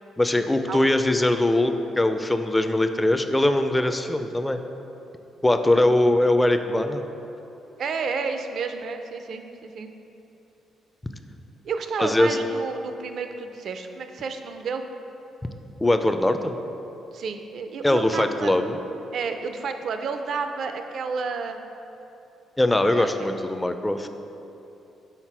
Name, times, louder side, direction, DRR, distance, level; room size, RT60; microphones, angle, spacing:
voice 1, 0.2-4.6 5.4-7.0 12.0-12.4 15.8-16.6 17.8-18.8 22.6-24.1, left 1 dB, 10° left, 8 dB, 0.3 m, -21 dB
voice 2, 5.6-5.9 7.8-9.9 11.6-14.8 17.1-18.5 19.1-21.6 22.9-23.3, right 5 dB, 60° right, 7 dB, 0.4 m, -31 dB
5.8 x 4.0 x 4.6 m, 2.9 s
cardioid pair, 90°, 0 cm